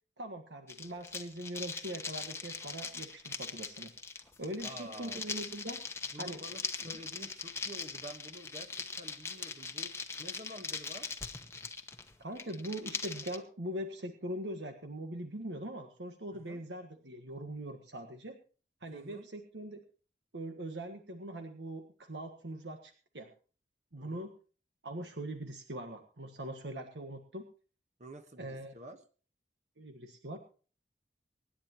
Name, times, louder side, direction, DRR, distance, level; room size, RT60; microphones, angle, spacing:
voice 1, 0.2-3.9 4.4-5.8 6.2-6.4 6.9-7.0 12.2-18.4 18.8-19.8 20.3-23.3 23.9-24.3 24.8-27.4 28.4-28.7 29.8-30.4, right 1 dB, 85° right, 5 dB, 1.5 m, -42 dB
sound 1, 0.7-13.4, left 4 dB, 15° left, 1.0 m, -41 dB
voice 2, 4.6-5.2 6.1-9.9 10.2-11.1 16.3-16.6 18.9-19.3 24.0-24.3 28.0-29.0, right 1 dB, 40° right, 7 dB, 1.2 m, -49 dB
25.0 x 10.0 x 3.0 m, 0.39 s
head